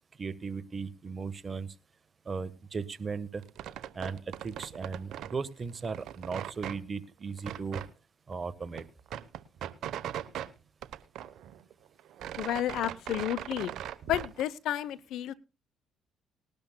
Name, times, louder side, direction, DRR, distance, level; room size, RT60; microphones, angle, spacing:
voice 1, 0.2-1.7 2.2-3.4 3.9-7.8 8.3-8.8, right 5 dB, 35° right, 13 dB, 1.4 m, -37 dB
sound 1, 3.4-5.4 5.7-6.8 7.4-7.9 8.3-8.4 8.6-10.5 10.8-11.7 12.0-14.4, right 10 dB, 70° right, 1.0 m, -39 dB
voice 2, 12.4-13.7 14.1-15.3, left 12 dB, 70° left, 18 dB, 0.8 m, -31 dB
19.5 x 12.0 x 2.3 m, 0.30 s
supercardioid pair, 70°, 0 cm